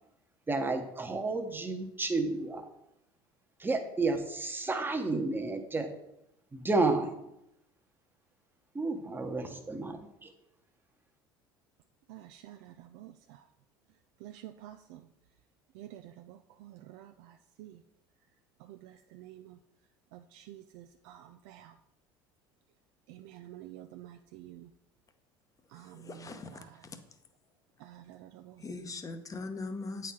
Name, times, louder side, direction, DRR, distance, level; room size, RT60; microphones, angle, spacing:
voice 1, 0.5-2.6 3.6-5.9 6.5-7.3 8.7-10.3, right 3 dB, 15° right, 5 dB, 1.0 m, -31 dB
voice 2, 12.1-13.4 14.2-15.0 15.7-17.8 18.7-19.6 20.1-21.7 23.1-24.7 25.7-26.8 27.8-28.9, right 13 dB, 75° right, 7 dB, 0.4 m, -50 dB
voice 3, 26.0-26.6 28.6-30.1, left 3 dB, 30° left, 8 dB, 0.9 m, -40 dB
8.2 x 4.4 x 3.7 m, 0.85 s
hypercardioid pair, 80°, 12 cm